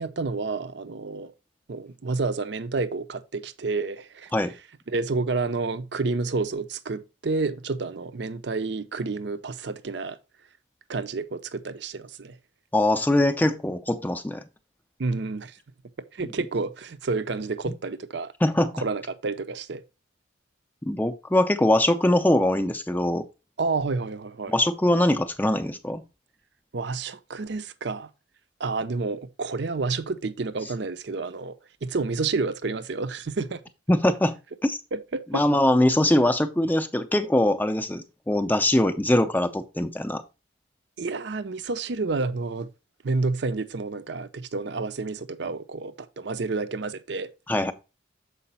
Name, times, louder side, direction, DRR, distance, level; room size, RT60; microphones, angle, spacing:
voice 1, 0.0-1.3 1.7-4.3 4.9-10.2 10.9-12.4 15.0-15.6 16.1-18.3 18.7-19.8 23.6-24.6 26.7-28.1 28.6-33.6 34.9-35.4 41.0-42.7 43.0-47.3, right 3 dB, 60° right, 0.5 m, -29 dB
voice 2, 12.7-14.4 18.4-18.8 20.8-23.2 24.5-26.0 33.9-34.3 34.6-34.8 35.3-40.2 47.5-47.7, left 1 dB, 10° left, 0.4 m, -22 dB
6.9 x 4.7 x 4.2 m
head